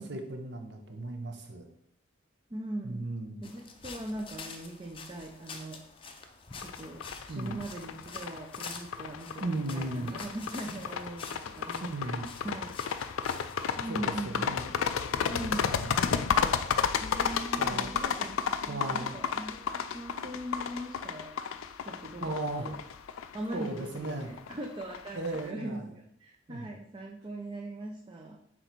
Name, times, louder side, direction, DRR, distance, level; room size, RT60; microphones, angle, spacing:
voice 1, 0.0-1.7 2.8-3.4 7.3-7.6 9.4-10.1 11.8-12.3 13.9-14.6 15.7-15.9 17.6-17.9 18.7-19.2 22.2-22.7 23.5-24.3 25.1-25.9 26.5-26.7, right 2 dB, 55° right, 4 dB, 0.9 m, -36 dB
voice 2, 2.5-3.1 3.4-5.8 6.6-12.8 13.8-14.5 15.3-15.8 17.0-22.8 23.3-25.8 26.2-28.4, right 1 dB, 25° right, 0 dB, 0.5 m, -40 dB
sound 1, 3.4-13.8, left 4 dB, 25° left, 0.5 m, -47 dB
sound 2, 6.6-25.4, left 7 dB, 90° left, 0.4 m, -33 dB
6.2 x 4.0 x 4.5 m, 0.73 s
head